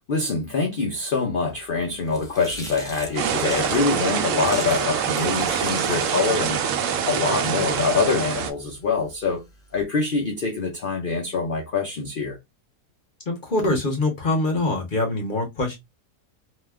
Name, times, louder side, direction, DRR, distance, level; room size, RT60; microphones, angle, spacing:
voice 1, 0.1-6.6 7.1-9.4 9.7-12.4, left 4 dB, 90° left, 0.4 m, -25 dB
sound 1, 1.6-9.8, equal, 5° left, 0.6 m, -41 dB
sound 2, 3.2-8.5, right 7 dB, 70° right, 0.8 m, -25 dB
voice 2, 13.3-15.8, left 2 dB, 45° left, 0.7 m, -24 dB
2.8 x 2.2 x 3.4 m
omnidirectional pair, 1.7 m